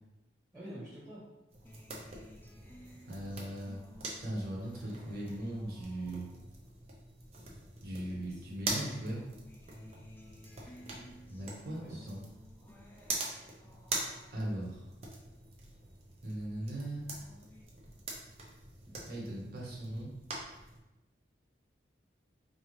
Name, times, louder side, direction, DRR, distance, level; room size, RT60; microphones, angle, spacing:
voice 1, 0.5-1.3 8.0-8.4 10.6-11.1 11.8-12.0 18.8-19.0, equal, 20° right, -8 dB, 1.2 m, -49 dB
sound 1, 1.5-20.8, right 2 dB, 35° right, 0.6 m, -44 dB
Acoustic guitar, 1.6-8.3 8.7-16.3 16.7-17.6, left 1 dB, 10° left, 0.4 m, -57 dB
voice 2, 3.1-3.8 4.2-6.3 7.8-9.2 11.3-12.2 14.3-14.8 16.2-17.1 19.0-20.1, right 1 dB, 55° right, -4 dB, 1.1 m, -39 dB
4.2 x 2.6 x 3.2 m, 0.93 s
head